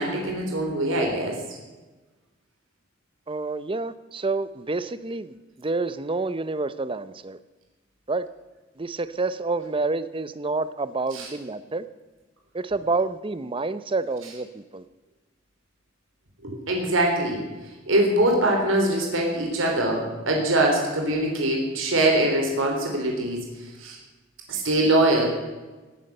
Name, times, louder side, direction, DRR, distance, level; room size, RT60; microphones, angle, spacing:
voice 1, 0.0-1.4 11.1-11.3 16.4-17.4 17.9-23.5 23.8-24.0 24.5-25.3, right 1 dB, 90° right, 0 dB, 3.5 m, -23 dB
voice 2, 3.3-7.4 8.1-8.3 8.8-11.8 12.5-14.8, right 3 dB, 25° right, 14 dB, 0.7 m, -28 dB
18.5 x 9.7 x 6.7 m, 1.2 s
head